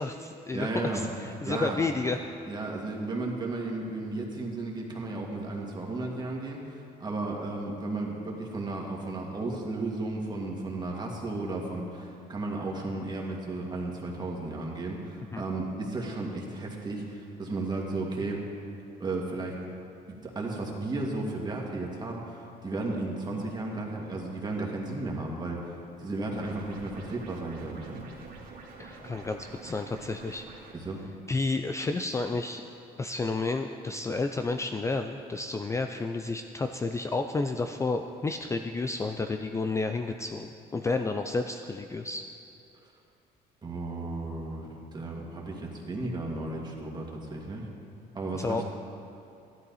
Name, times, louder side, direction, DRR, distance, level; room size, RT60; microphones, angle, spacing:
voice 1, 0.0-0.7 0.9-2.2 15.3-15.4 28.8-30.4 31.3-32.6 33.0-42.2 48.4-48.6, left 3 dB, 15° left, 6 dB, 0.4 m, -31 dB
voice 2, 0.5-1.1 1.5-1.8 2.5-18.4 19.0-19.6 20.2-28.0 30.7-31.0 43.6-47.7 48.1-48.6, right 2 dB, 25° right, -2 dB, 2.1 m, -34 dB
sound 1, 26.3-30.7, right 4 dB, 60° right, 2.2 m, -47 dB
13.5 x 12.0 x 4.2 m, 2.7 s
cardioid pair, 110°, 17 cm